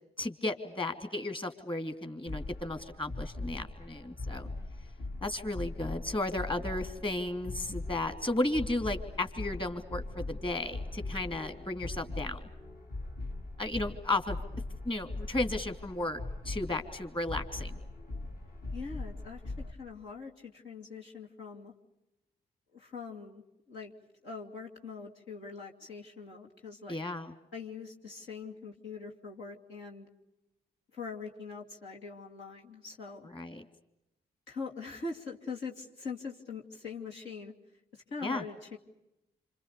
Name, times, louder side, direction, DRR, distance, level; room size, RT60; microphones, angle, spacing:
voice 1, 0.2-4.5 5.2-12.4 13.6-14.4 14.8-17.8 26.9-27.3 33.3-33.6 38.2-38.4, left 2 dB, 25° left, 8 dB, 3.0 m, -34 dB
sound 1, 2.3-19.7, left 2 dB, 55° left, 2.8 m, -40 dB
voice 2, 18.7-21.7 22.7-23.9 24.2-27.0 27.5-30.1 30.9-33.3 34.5-37.5 37.9-38.8, left 4 dB, 80° left, -2 dB, 2.8 m, -43 dB
27.0 x 27.0 x 6.9 m, 0.92 s
supercardioid pair, 45°, 19 cm